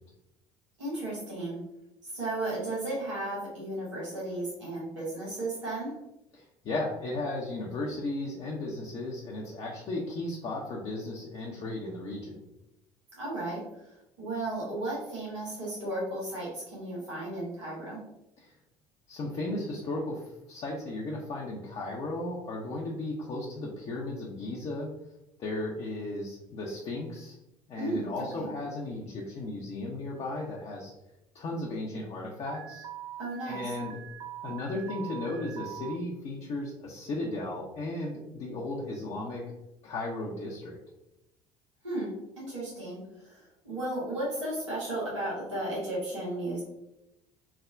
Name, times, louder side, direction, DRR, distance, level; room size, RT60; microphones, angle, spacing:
voice 1, 0.8-1.6 2.1-5.9 13.2-13.6 14.2-18.0 27.8-28.5 33.2-33.6 41.8-46.6, right 1 dB, 90° right, -7 dB, 1.1 m, -34 dB
voice 2, 6.3-12.4 18.4-18.5 19.1-24.9 25.4-27.4 27.7-30.9 31.3-32.8 33.4-34.0 34.4-39.4 39.8-40.8, left 2 dB, 45° left, -3 dB, 0.6 m, -35 dB
Alarm, 32.5-35.9, right 12 dB, 65° right, 0.4 m, -42 dB
3.3 x 2.1 x 2.4 m, 0.91 s
hypercardioid pair, 60°, 15 cm